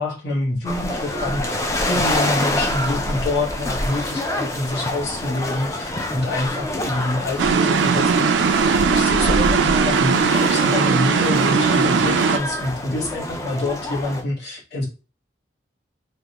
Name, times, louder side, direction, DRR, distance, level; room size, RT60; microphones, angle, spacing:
voice 1, 0.0-8.6 8.9-14.9, left 2 dB, 65° left, -3 dB, 1.1 m, -26 dB
sound 1, 0.6-14.2, left 1 dB, 15° left, 0.4 m, -27 dB
sound 2, 7.4-12.4, right 5 dB, 80° right, 0.4 m, -18 dB
3.4 x 2.1 x 2.9 m, 0.33 s
head